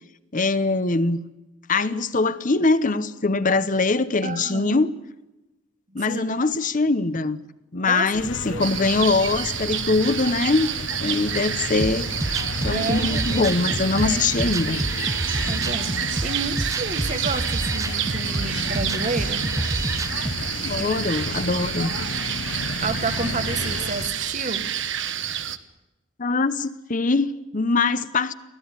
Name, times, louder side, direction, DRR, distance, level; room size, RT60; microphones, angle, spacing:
voice 1, 0.3-1.2 1.7-4.9 5.9-7.4 7.7-10.7 11.0-12.1 12.6-14.8 20.5-21.9 26.2-28.3, left 3 dB, 40° left, 0.9 m, -22 dB
voice 2, 4.2-4.9 5.9-6.4 7.8-8.1 8.4-8.8 12.6-14.2 15.4-19.5 20.8-21.0 22.8-24.7, right 3 dB, 40° right, 1.7 m, -31 dB
sound 1, 8.1-24.1, left 3 dB, 70° left, 1.3 m, -33 dB
sound 2, 8.6-25.6, right 10 dB, 65° right, 1.2 m, -29 dB
sound 3, 11.8-20.4, right 1 dB, 15° right, 0.8 m, -29 dB
24.5 x 16.0 x 9.7 m
head